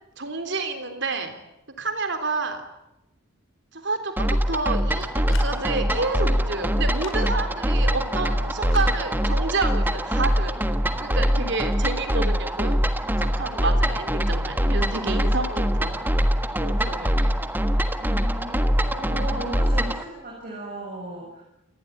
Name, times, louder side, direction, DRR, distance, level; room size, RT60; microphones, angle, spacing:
voice 1, 0.2-1.4 1.8-2.7 3.7-10.6 11.0-12.8 13.1-16.1 16.6-17.4, right 3 dB, 60° right, 8 dB, 3.7 m, -29 dB
sound 1, 4.2-20.0, equal, 10° right, 1.4 m, -23 dB
sound 2, 5.0-5.5 6.9-7.2 8.6-8.9, left 6 dB, 75° left, 5.0 m, -41 dB
voice 2, 11.1-11.6 18.0-21.4, right 1 dB, 45° right, -2 dB, 7.5 m, -36 dB
28.0 x 19.5 x 9.2 m, 0.89 s
head